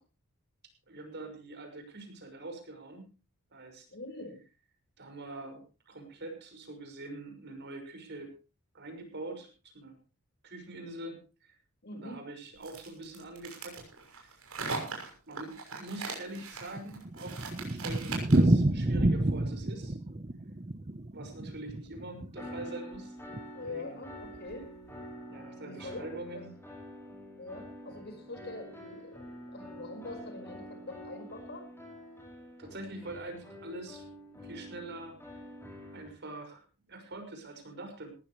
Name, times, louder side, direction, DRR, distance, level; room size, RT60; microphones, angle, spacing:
voice 1, 0.9-3.1 3.5-3.9 5.0-8.3 8.7-9.5 9.7-9.9 10.4-11.6 11.9-13.8 14.1-14.9 15.3-20.0 21.1-23.2 23.6-24.0 25.3-26.6 32.6-35.4 35.9-38.1, right 2 dB, 55° right, 5 dB, 5.9 m, -44 dB
voice 2, 3.9-4.4 11.8-12.2 23.5-24.6 25.6-26.4 27.4-31.7, left 2 dB, 50° left, 6 dB, 5.2 m, -44 dB
sound 1, 12.6-18.5, right 4 dB, 85° right, 6.5 m, -40 dB
Thunder, 16.4-22.7 22.9-23.0 23.3-23.4 23.7-23.8 24.3-24.7, right 1 dB, 30° right, 0.9 m, -29 dB
sound 2, 22.3-36.1, equal, 10° left, 5.5 m, -47 dB
19.5 x 15.0 x 3.2 m, 0.32 s
head